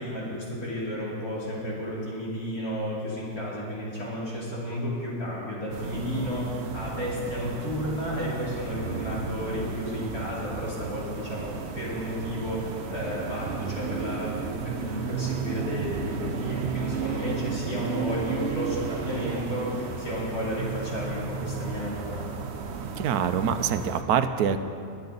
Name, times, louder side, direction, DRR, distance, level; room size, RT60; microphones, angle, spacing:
voice 1, 0.0-22.3, equal, 70° left, -6 dB, 3.2 m, -32 dB
sound 1, 5.7-24.0, right 5 dB, 55° right, 0.9 m, -33 dB
voice 2, 23.0-24.6, right 8 dB, 75° right, 10 dB, 1.1 m, -25 dB
22.5 x 8.6 x 4.0 m, 2.4 s
omnidirectional pair, 1.6 m